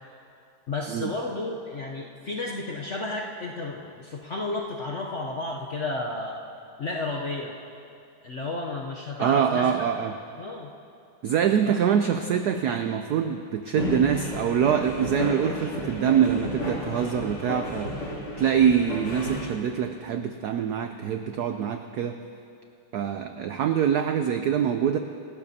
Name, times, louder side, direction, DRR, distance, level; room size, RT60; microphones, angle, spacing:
voice 1, 0.7-6.4 6.8-7.5 8.2-9.7 10.4-10.7 11.6-11.8, left 2 dB, 60° left, -1 dB, 0.7 m, -32 dB
voice 2, 9.2-10.2 11.2-17.9 18.4-22.2 22.9-25.0, right 8 dB, 80° right, 7 dB, 0.8 m, -24 dB
sound 1, 13.8-19.4, left 1 dB, 85° left, 3.7 m, -32 dB
26.0 x 12.0 x 2.8 m, 2.5 s
omnidirectional pair, 2.3 m